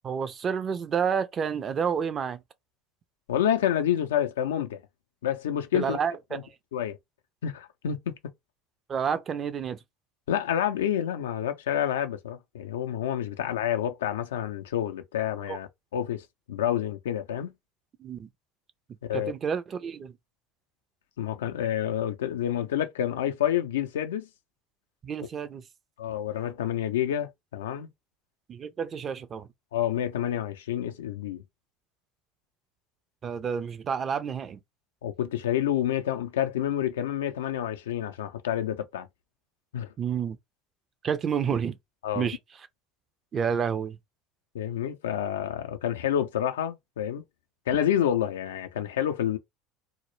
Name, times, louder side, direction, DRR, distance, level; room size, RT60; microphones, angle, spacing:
voice 1, 0.0-2.4 5.7-6.4 8.9-9.8 15.5-15.6 18.0-18.3 19.1-20.1 25.0-25.6 28.5-29.5 33.2-34.6 40.0-40.4 41.0-41.8 42.1-42.4 43.3-44.0, right 7 dB, 40° right, 0.4 m, -29 dB
voice 2, 3.3-4.8 5.2-6.0 6.3-6.4 6.7-7.0 7.4-8.1 10.3-17.5 19.0-19.3 21.2-24.3 26.0-27.9 29.7-31.4 35.0-39.1 39.7-39.9 42.0-42.3 44.5-47.2 47.7-49.4, left 10 dB, 85° left, 0.3 m, -28 dB
2.0 x 2.0 x 3.0 m
hypercardioid pair, 75°, 0 cm